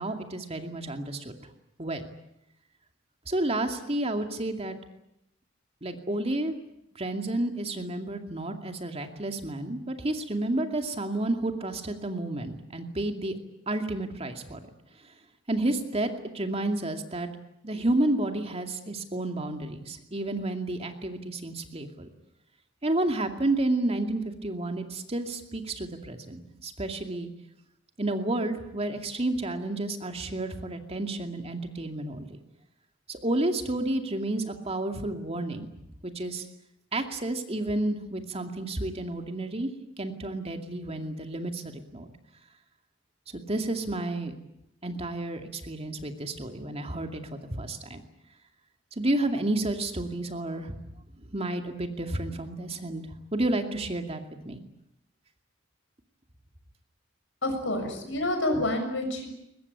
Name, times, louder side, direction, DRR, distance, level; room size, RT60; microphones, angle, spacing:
voice 1, 0.0-1.3 1.8-2.1 3.3-4.8 5.8-6.5 6.9-13.4 13.7-14.6 15.5-17.3 17.6-22.1 22.8-27.3 28.0-32.4 33.1-35.7 36.0-36.5 36.9-39.7 40.0-42.1 43.3-44.3 44.8-48.0 49.0-50.7 51.3-53.1 53.3-54.6, right 2 dB, 30° right, 5 dB, 2.4 m, -31 dB
voice 2, 57.4-59.3, left 1 dB, 70° left, 6 dB, 6.8 m, -28 dB
22.5 x 21.0 x 9.8 m, 0.80 s
head